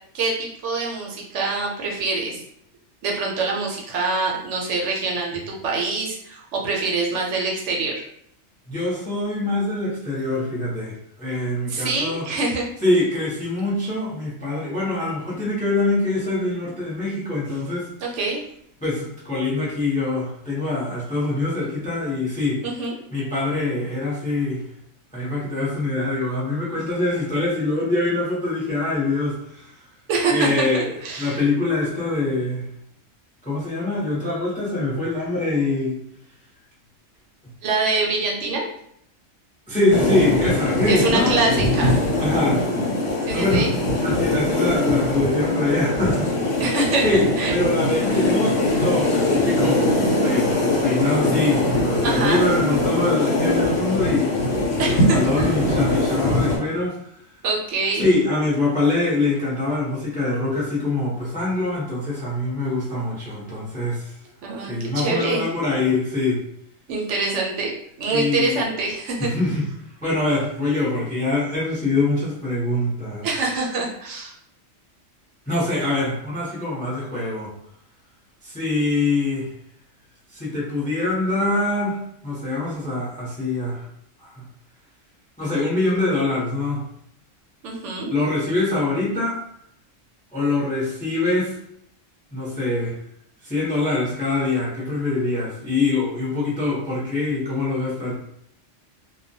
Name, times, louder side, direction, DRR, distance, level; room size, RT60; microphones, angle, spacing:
voice 1, 0.1-2.4 3.0-8.0 11.7-12.7 18.0-18.4 22.6-22.9 30.1-31.4 37.6-38.6 40.9-42.0 43.3-43.7 46.6-47.6 48.1-48.3 52.0-52.5 54.8-55.5 57.4-58.0 64.4-65.4 66.9-69.3 73.2-74.3 87.6-88.1, right 3 dB, 75° right, -1 dB, 0.9 m, -25 dB
voice 2, 8.7-12.3 12.8-17.9 18.8-22.6 23.1-24.6 25.1-29.7 30.3-30.9 31.2-32.6 33.4-36.0 39.7-41.4 42.2-42.6 43.3-43.7 44.0-46.3 47.0-47.2 47.5-54.3 54.7-57.1 58.0-64.1 64.7-66.4 68.1-68.6 69.2-69.7 70.0-73.3 75.5-77.5 78.4-79.5 80.3-83.9 84.2-84.4 85.4-86.9 88.1-89.4 90.3-91.5 92.3-93.0 93.4-98.1, left 2 dB, 10° left, -6 dB, 0.5 m, -24 dB
sound 1, 39.9-56.6, left 1 dB, 80° left, 1.0 m, -21 dB
2.2 x 2.2 x 2.6 m, 0.71 s
omnidirectional pair, 1.3 m